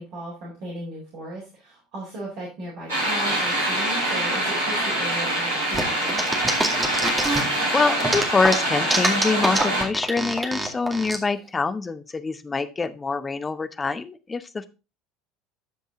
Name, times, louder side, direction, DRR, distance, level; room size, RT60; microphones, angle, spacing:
voice 1, 0.0-6.4, right 1 dB, 55° right, -4 dB, 4.0 m, -36 dB
sound 1, 2.9-9.8, right 1 dB, 75° right, 5.5 m, -24 dB
sound 2, 5.7-7.6 8.0-11.2, right 2 dB, 15° right, 2.1 m, -25 dB
voice 2, 7.7-14.7, left 4 dB, 20° left, 13 dB, 0.8 m, -25 dB
13.0 x 5.3 x 3.8 m, 0.30 s
figure-of-eight pair, 65°, 0 cm